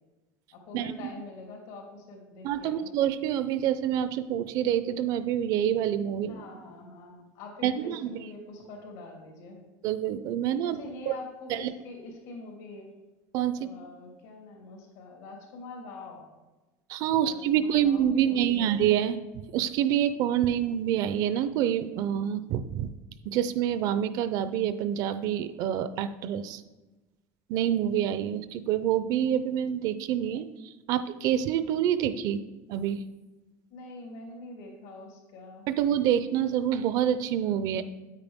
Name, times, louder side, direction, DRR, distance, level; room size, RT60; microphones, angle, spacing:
voice 1, 0.5-2.9 6.1-9.6 10.6-12.9 13.5-16.2 17.2-18.7 33.7-35.7, left 3 dB, 85° left, 0 dB, 3.0 m, -45 dB
voice 2, 2.4-6.4 7.6-8.1 9.8-10.8 11.1-11.2 11.5-11.7 13.3-13.7 16.9-19.2 19.5-22.9 23.3-26.6 27.5-32.4 32.7-33.0 35.7-37.8, right 10 dB, 50° right, 13 dB, 0.5 m, -27 dB
9.0 x 8.8 x 3.5 m, 1.1 s
cardioid pair, 165°, 8 cm